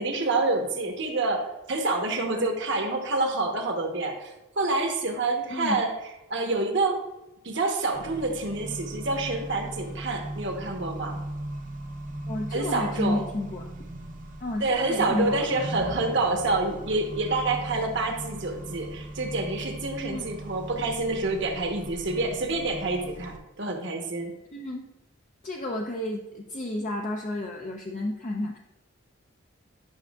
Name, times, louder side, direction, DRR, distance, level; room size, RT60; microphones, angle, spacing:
voice 1, 0.0-5.9 6.3-7.0 7.4-11.2 12.5-13.2 14.6-24.3, right 2 dB, 60° right, 2 dB, 1.1 m, -27 dB
Accelerating revving vroom, 7.9-23.4, right 1 dB, 40° right, 0.6 m, -38 dB
voice 2, 12.3-13.6 14.4-15.5 20.0-20.2 24.5-24.9 25.4-28.6, left 1 dB, 35° left, 0 dB, 0.6 m, -31 dB
9.1 x 6.2 x 2.4 m, 1.0 s
head